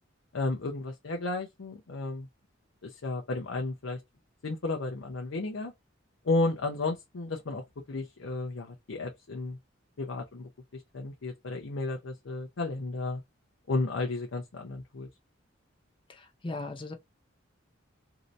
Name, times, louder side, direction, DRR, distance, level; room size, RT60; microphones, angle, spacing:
voice 1, 0.3-2.3 2.8-4.0 4.4-5.7 6.2-7.6 7.9-9.6 10.0-13.2 13.7-15.1, left 2 dB, 80° left, 0.6 m, -33 dB
voice 2, 16.1-16.9, left 2 dB, 25° left, 0.6 m, -38 dB
2.8 x 2.7 x 3.1 m
head